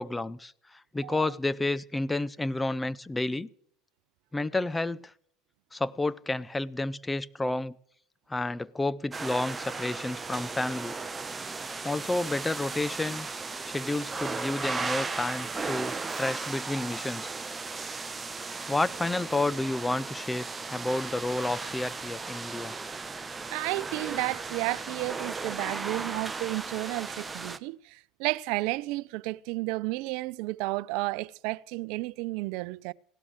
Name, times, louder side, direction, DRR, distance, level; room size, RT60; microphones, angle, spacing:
voice 1, 0.0-3.5 4.3-5.1 5.7-7.7 8.3-11.0 11.8-13.3 13.7-17.4 18.7-22.7, left 2 dB, 15° left, 0.7 m, -30 dB
voice 2, 1.0-1.3 23.5-32.9, right 22 dB, 70° right, 0.6 m, -32 dB
sound 1, 9.1-27.6, right 4 dB, 20° right, 1.0 m, -36 dB
17.0 x 12.5 x 6.5 m
supercardioid pair, 95°, 0 cm